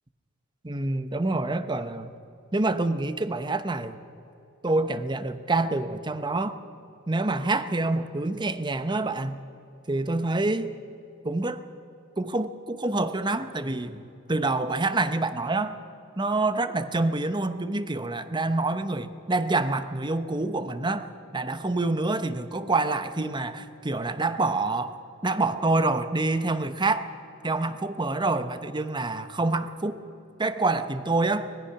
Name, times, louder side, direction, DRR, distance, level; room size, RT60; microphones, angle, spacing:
voice 1, 0.6-2.1 2.5-4.0 4.6-6.6 7.1-9.4 9.9-10.7 11.2-11.6 12.2-15.8 16.2-21.1 21.3-25.0 25.2-27.1 27.4-30.0 30.4-31.5, right 2 dB, 20° right, 11 dB, 0.9 m, -27 dB
24.5 x 19.5 x 5.9 m, 2.7 s
head